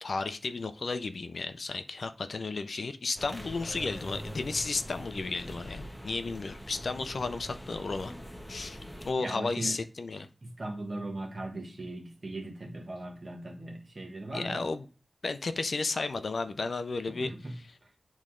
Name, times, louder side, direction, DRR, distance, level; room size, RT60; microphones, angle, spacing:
voice 1, 0.0-8.1 8.5-8.8 9.0-10.3 14.3-14.8 15.2-17.3, left 3 dB, 80° left, 0.5 m, -33 dB
sound 1, 3.1-9.1, equal, 10° left, 0.8 m, -43 dB
voice 2, 9.2-9.8 10.4-14.7 17.1-17.5 17.8-17.9, right 2 dB, 55° right, 1.3 m, -39 dB
8.5 x 3.1 x 3.7 m
wide cardioid pair, 65°, 0 cm